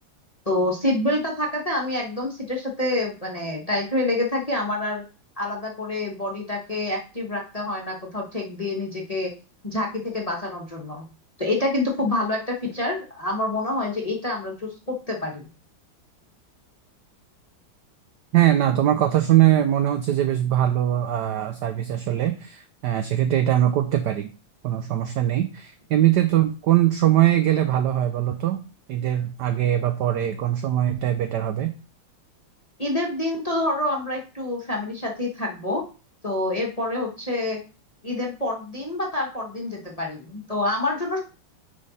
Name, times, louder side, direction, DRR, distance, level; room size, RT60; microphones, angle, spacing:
voice 1, 0.4-5.0 5.4-9.3 9.6-11.0 11.4-15.5 32.8-35.8 36.2-37.6 38.0-41.2, left 2 dB, 25° left, 0 dB, 1.0 m, -27 dB
voice 2, 18.3-24.3 24.6-28.6 28.9-31.7, right 12 dB, 75° right, 9 dB, 0.9 m, -21 dB
9.6 x 3.7 x 4.1 m, 0.34 s
omnidirectional pair, 2.3 m